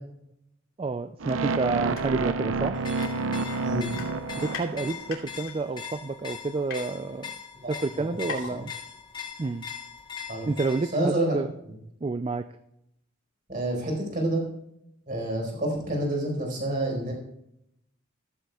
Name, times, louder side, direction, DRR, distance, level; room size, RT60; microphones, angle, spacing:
voice 1, 0.8-2.8 4.4-7.3 7.7-8.7 9.4-9.6 10.5-11.5 12.0-12.5, right 3 dB, 25° right, 10 dB, 0.3 m, -29 dB
sound 1, 1.2-5.3, right 3 dB, 75° right, 0.7 m, -29 dB
sound 2, 1.8-2.1 2.4-2.5 3.0-3.6 3.9-4.7 5.1-5.6 6.2-6.8 7.5-7.6 7.8-7.9 8.3-8.6 8.9-9.0, left 4 dB, 85° left, 2.8 m, -38 dB
sound 3, 2.7-11.0, left 7 dB, 20° left, 1.2 m, -41 dB
voice 2, 7.6-8.1 8.5-8.6 10.3-10.5 10.9-11.4 13.5-14.4 15.1-17.1, right 1 dB, 40° right, 0 dB, 4.5 m, -28 dB
14.0 x 14.0 x 2.3 m, 0.78 s
head